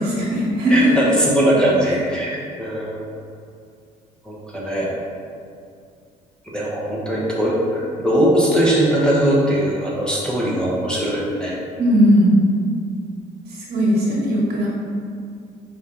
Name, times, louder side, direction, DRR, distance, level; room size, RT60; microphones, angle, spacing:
voice 1, 0.0-1.0 1.8-2.0 11.8-12.5 13.5-14.7, equal, 70° right, -4 dB, 1.3 m, -18 dB
voice 2, 0.7-3.0 4.2-4.9 6.5-11.6, right 1 dB, 5° left, -6 dB, 0.8 m, -20 dB
4.7 x 3.3 x 2.8 m, 2.3 s
cardioid pair, 110°, 17 cm